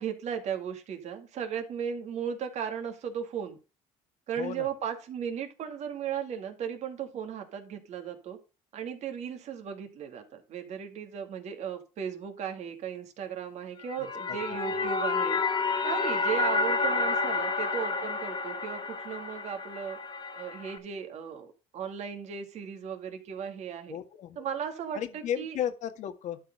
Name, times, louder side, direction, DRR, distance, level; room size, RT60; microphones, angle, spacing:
voice 1, 0.0-3.6 4.3-8.4 8.7-15.4 15.8-20.0 20.3-24.0 24.4-25.6, right 8 dB, 55° right, 2.4 m, -36 dB
sound 1, 13.8-20.8, left 3 dB, 35° left, 1.9 m, -30 dB
voice 2, 14.3-14.9 23.9-24.4 24.9-26.4, left 10 dB, 60° left, 1.7 m, -35 dB
12.0 x 4.5 x 5.4 m
cardioid pair, 110°, 14 cm